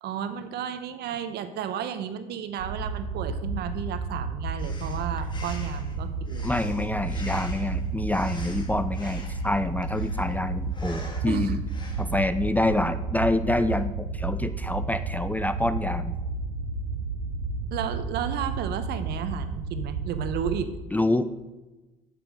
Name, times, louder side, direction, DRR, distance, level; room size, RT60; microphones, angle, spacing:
voice 1, 0.0-6.5 11.2-11.6 17.7-20.7, right 8 dB, 55° right, 10 dB, 0.8 m, -33 dB
sound 1, 2.6-20.7, right 3 dB, 85° right, 0.7 m, -32 dB
Breathing, 4.6-12.2, left 2 dB, 25° left, 1.6 m, -45 dB
voice 2, 6.4-11.6 12.0-16.2 20.9-21.3, left 1 dB, 10° left, 12 dB, 0.4 m, -27 dB
7.9 x 6.2 x 5.1 m, 1.1 s
hypercardioid pair, 65°, 19 cm